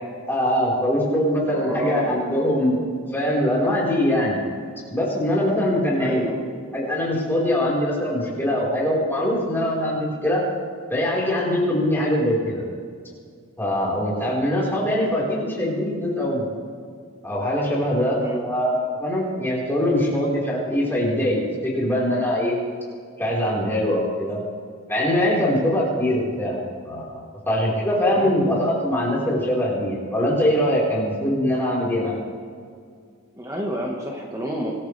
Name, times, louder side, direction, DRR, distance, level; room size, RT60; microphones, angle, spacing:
voice 1, 0.3-2.8 3.1-4.4 4.9-6.3 6.7-10.4 10.9-12.6 13.6-16.4 17.2-22.6 23.2-24.4 24.9-26.6 26.8-32.2, left 1 dB, 10° left, -5 dB, 4.2 m, -22 dB
voice 2, 1.5-2.3 6.0-6.4 18.2-18.4 28.2-28.3 33.4-34.7, equal, 15° right, -1 dB, 1.3 m, -29 dB
25.0 x 13.5 x 3.3 m, 2.2 s
head